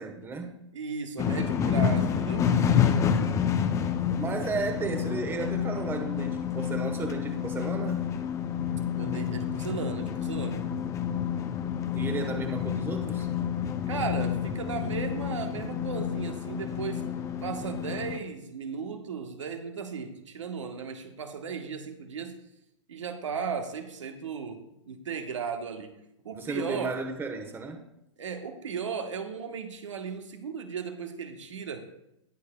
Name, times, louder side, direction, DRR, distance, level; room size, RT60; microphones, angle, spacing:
voice 1, 0.0-0.6 4.2-8.1 11.9-13.3 26.3-27.8, right 4 dB, 15° right, 5 dB, 1.1 m, -34 dB
voice 2, 0.7-2.5 8.9-10.7 13.9-17.1 17.4-22.4 22.9-26.0 26.2-26.9 28.2-31.9, right 6 dB, 80° right, 5 dB, 1.2 m, -36 dB
sound 1, 1.2-18.2, left 8 dB, 20° left, 0.6 m, -29 dB
19.0 x 6.6 x 2.3 m, 0.84 s
hypercardioid pair, 125°, 16 cm